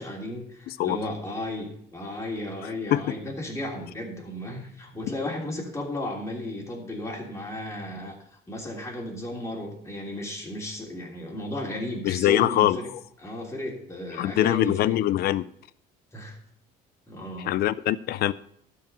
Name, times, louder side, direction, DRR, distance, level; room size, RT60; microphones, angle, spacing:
voice 1, 0.0-8.2 8.5-12.9 13.2-15.0 16.1-16.4 17.1-17.5, left 1 dB, 15° left, 3.1 m, -34 dB
voice 2, 0.7-1.0 2.9-3.0 12.0-12.8 14.1-15.4 17.4-18.3, left 13 dB, 70° left, 0.5 m, -23 dB
12.5 x 4.8 x 7.5 m
cardioid pair, 110°, 17 cm